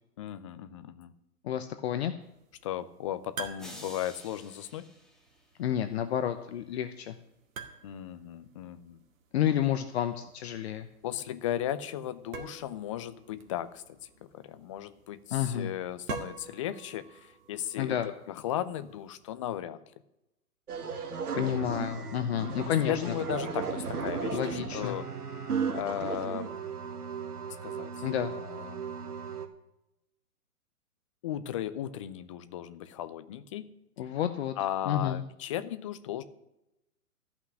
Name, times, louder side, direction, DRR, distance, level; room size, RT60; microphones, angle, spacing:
voice 1, 0.2-1.1 2.6-4.8 7.8-9.0 11.0-19.8 22.7-25.1 25.7-26.6 27.6-28.9 31.2-33.7 34.6-36.2, left 11 dB, 20° left, 12 dB, 0.5 m, -36 dB
voice 2, 1.4-2.1 5.6-7.2 9.3-10.9 15.3-15.7 17.8-18.1 21.3-23.1 24.3-25.0 28.0-28.3 34.0-34.5 34.9-35.2, left 10 dB, 45° left, 9 dB, 0.9 m, -30 dB
sound 1, 2.2-19.3, right 5 dB, 60° right, 2.1 m, -48 dB
sound 2, 3.6-5.9, equal, ahead, 1.5 m, -50 dB
sound 3, 20.7-29.5, right 5 dB, 75° right, 2.0 m, -35 dB
14.0 x 6.1 x 9.9 m, 0.89 s
hypercardioid pair, 130°, 45 cm